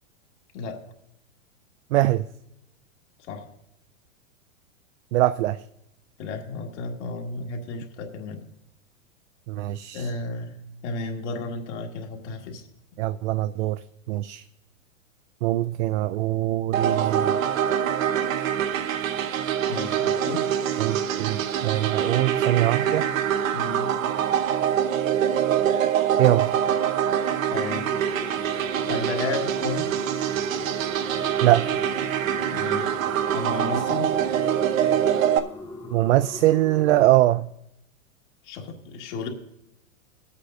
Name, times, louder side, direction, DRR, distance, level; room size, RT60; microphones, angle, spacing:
voice 1, 1.9-2.3 5.1-5.6 9.5-10.1 13.0-13.8 14.1-14.4 15.4-17.3 20.8-23.1 26.2-26.5 31.4-31.7 35.9-37.5, right 15 dB, 60° right, 11 dB, 0.5 m, -22 dB
voice 2, 6.2-8.4 9.9-12.6 19.7-20.5 23.5-23.9 27.5-27.9 28.9-29.9 32.5-32.9 33.3-34.1 38.4-39.3, left 3 dB, 60° left, 1 dB, 1.9 m, -33 dB
sound 1, 16.7-35.4, right 9 dB, 80° right, 1.0 m, -24 dB
sound 2, 27.9-37.1, left 2 dB, 5° left, 0.3 m, -40 dB
23.0 x 8.3 x 2.6 m, 0.83 s
hypercardioid pair, 140°, 40 cm